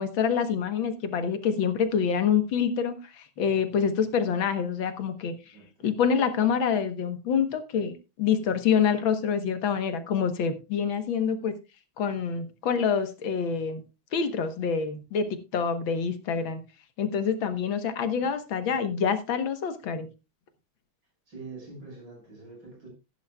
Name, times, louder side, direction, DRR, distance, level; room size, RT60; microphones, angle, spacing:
voice 1, 0.0-5.6 5.8-11.5 12.0-13.8 14.1-16.6 17.0-20.1, left 7 dB, 75° left, 1.9 m, -26 dB
voice 2, 5.5-5.9 18.2-18.3 18.7-18.8 21.3-22.9, right 3 dB, 70° right, 6.5 m, -45 dB
15.5 x 10.5 x 2.3 m
omnidirectional pair, 2.2 m